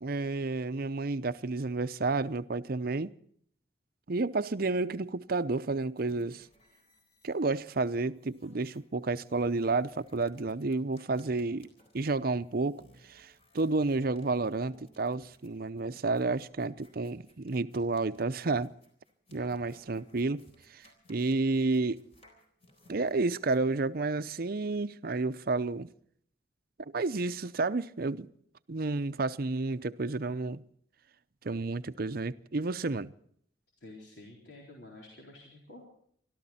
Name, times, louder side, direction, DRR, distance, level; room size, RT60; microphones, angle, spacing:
voice 1, 0.0-3.1 4.1-6.5 7.2-11.7 11.9-12.8 13.1-18.7 19.3-20.4 20.7-22.0 22.9-25.9 26.9-28.3 28.7-30.6 31.4-33.1, right 3 dB, 55° right, 0.7 m, -31 dB
sound 1, 5.9-23.7, left 1 dB, 35° left, 4.0 m, -63 dB
voice 2, 33.8-35.9, left 2 dB, 65° left, 3.9 m, -50 dB
24.5 x 13.5 x 4.3 m
head